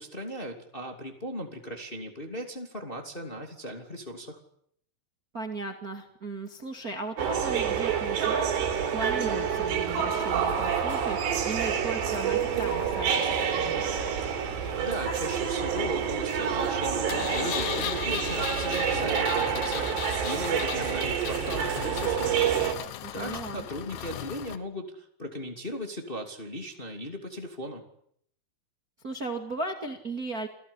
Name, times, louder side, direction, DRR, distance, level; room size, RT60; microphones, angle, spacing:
voice 1, 0.0-4.4 14.7-22.3 23.1-27.8, equal, 15° left, 3 dB, 2.3 m, -37 dB
voice 2, 5.3-8.5 8.9-11.2 11.4-13.8 23.0-23.7 29.0-30.5, right 3 dB, 30° right, 5 dB, 2.1 m, -36 dB
sound 1, 7.2-22.7, right 7 dB, 90° right, 5.3 m, -28 dB
Engine, 17.1-24.6, left 12 dB, 75° left, 3.2 m, -36 dB
28.5 x 17.5 x 9.9 m, 0.68 s
omnidirectional pair, 4.8 m